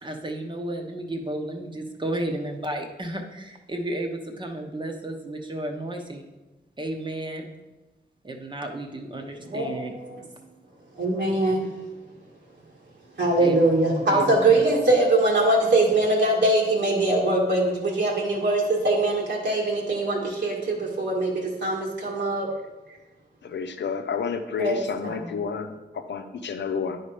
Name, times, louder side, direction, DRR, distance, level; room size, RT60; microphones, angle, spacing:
voice 1, 0.0-6.2 6.8-7.5 8.2-9.9 13.4-13.6 14.1-14.6, right 1 dB, 25° right, 3 dB, 0.9 m, -33 dB
voice 2, 9.4-10.2 11.0-11.7 13.2-22.5 24.6-25.2, right 2 dB, 80° right, -3 dB, 1.9 m, -22 dB
voice 3, 23.4-27.0, left 6 dB, 85° left, 8 dB, 0.7 m, -30 dB
9.9 x 4.3 x 5.0 m, 1.1 s
wide cardioid pair, 120°, 18 cm